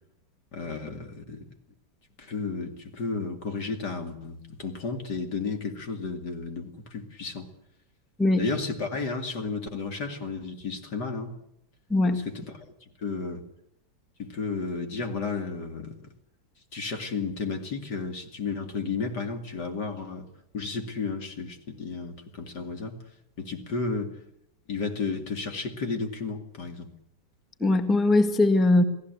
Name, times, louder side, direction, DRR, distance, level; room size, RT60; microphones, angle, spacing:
voice 1, 0.5-1.5 2.2-7.5 8.4-11.3 12.1-12.5 13.0-13.4 14.2-16.1 16.7-20.3 20.5-23.0 23.4-24.1 24.7-26.9, left 4 dB, 55° left, 3.1 m, -33 dB
voice 2, 8.2-8.5 11.9-12.2 27.6-28.8, left 2 dB, ahead, 1.5 m, -21 dB
28.5 x 17.5 x 8.1 m
omnidirectional pair, 2.1 m